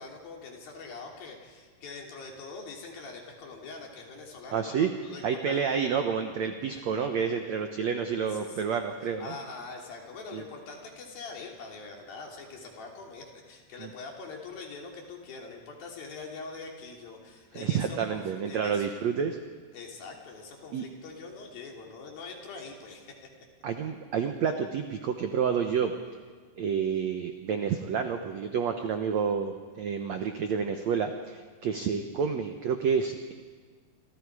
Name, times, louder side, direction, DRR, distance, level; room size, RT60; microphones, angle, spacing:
voice 1, 0.0-5.6 8.3-8.6 9.0-18.9 19.7-23.2, left 4 dB, 60° left, 0 dB, 4.8 m, -43 dB
voice 2, 4.5-4.9 5.2-9.3 10.3-10.4 13.8-13.9 17.5-19.4 20.7-20.8 23.6-25.9 26.6-33.3, right 6 dB, 85° right, 5 dB, 1.5 m, -29 dB
27.5 x 27.0 x 4.9 m, 1.5 s
omnidirectional pair, 4.8 m